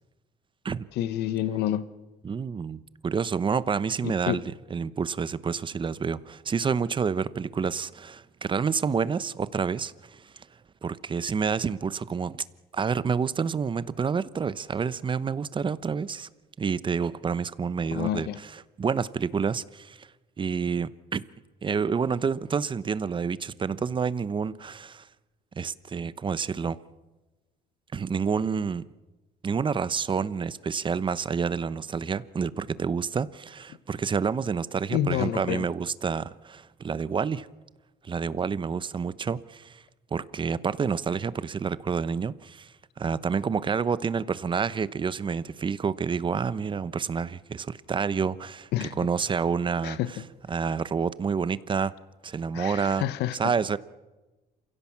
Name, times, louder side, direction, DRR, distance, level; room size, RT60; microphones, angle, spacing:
voice 1, 1.0-1.9 4.0-4.4 17.9-18.4 34.9-35.6 48.7-49.1 49.8-50.1 52.5-53.5, left 12 dB, 80° left, 1.1 m, -28 dB
voice 2, 2.2-4.4 4.7-10.5 10.8-12.4 12.7-16.3 16.6-20.1 20.4-21.2 21.6-25.1 25.6-26.8 27.9-28.8 29.4-37.5 38.0-39.8 40.1-42.7 43.0-50.0 50.5-51.9 52.2-53.0 53.4-53.8, right 6 dB, 30° right, 0.9 m, -28 dB
28.0 x 16.5 x 7.3 m
cardioid pair, 110°, 17 cm